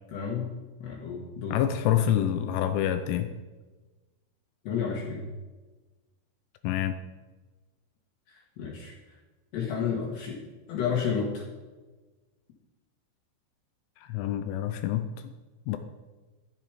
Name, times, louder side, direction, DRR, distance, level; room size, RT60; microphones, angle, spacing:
voice 1, 0.1-0.5 0.8-1.6 4.6-5.2 8.3-8.9 9.5-10.4 10.7-11.4, left 6 dB, 65° left, -3 dB, 3.3 m, -31 dB
voice 2, 1.5-3.3 6.6-7.0 14.0-15.1 15.7-15.8, left 11 dB, 80° left, 8 dB, 2.9 m, -27 dB
12.0 x 11.0 x 4.9 m, 1.3 s
omnidirectional pair, 5.9 m